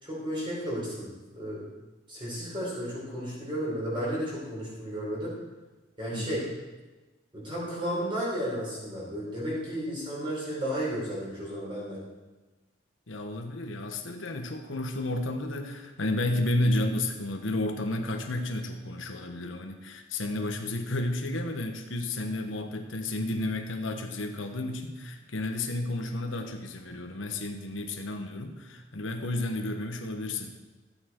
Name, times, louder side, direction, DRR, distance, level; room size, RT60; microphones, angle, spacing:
voice 1, 0.0-1.6 2.1-5.4 6.0-6.5 7.3-12.0, equal, 25° right, -6 dB, 4.6 m, -33 dB
voice 2, 6.1-6.4 13.1-30.5, left 1 dB, 80° left, 5 dB, 1.2 m, -32 dB
13.5 x 8.9 x 4.5 m, 1.2 s
head